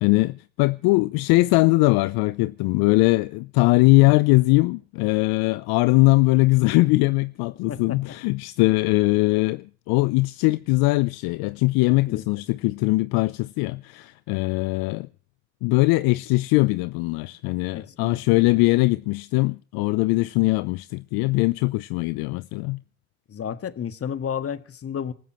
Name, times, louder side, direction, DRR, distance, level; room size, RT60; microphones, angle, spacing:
voice 1, 0.0-15.1 15.6-22.8, left 23 dB, 60° left, 0.7 m, -21 dB
voice 2, 7.7-8.0 12.1-12.4 17.7-18.6 23.3-25.1, left 8 dB, 35° left, 1.7 m, -32 dB
27.0 x 14.5 x 3.1 m
hypercardioid pair, 70°, 42 cm